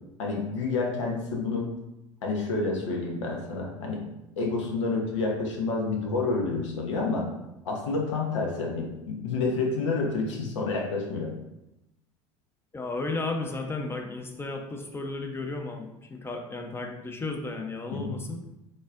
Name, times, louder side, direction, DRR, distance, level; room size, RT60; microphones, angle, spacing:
voice 1, 0.2-1.7 2.2-4.0 4.4-7.3 7.6-11.3 17.9-18.2, left 3 dB, 75° left, 0 dB, 0.9 m, -29 dB
voice 2, 12.7-18.4, left 3 dB, 15° left, 3 dB, 0.7 m, -34 dB
4.0 x 3.6 x 2.5 m, 0.92 s
figure-of-eight pair, 70°, 16 cm